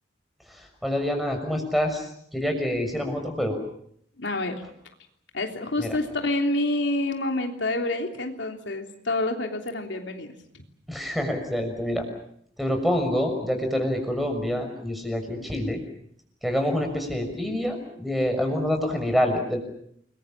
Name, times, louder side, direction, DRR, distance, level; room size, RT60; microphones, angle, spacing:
voice 1, 0.8-2.1 2.3-3.6 5.8-6.0 10.9-12.1 12.6-15.8 16.4-19.6, equal, ahead, 5 dB, 6.2 m, -26 dB
voice 2, 4.2-4.6 5.3-10.6, left 2 dB, 80° left, 3 dB, 3.3 m, -28 dB
29.5 x 22.0 x 7.4 m, 0.68 s
head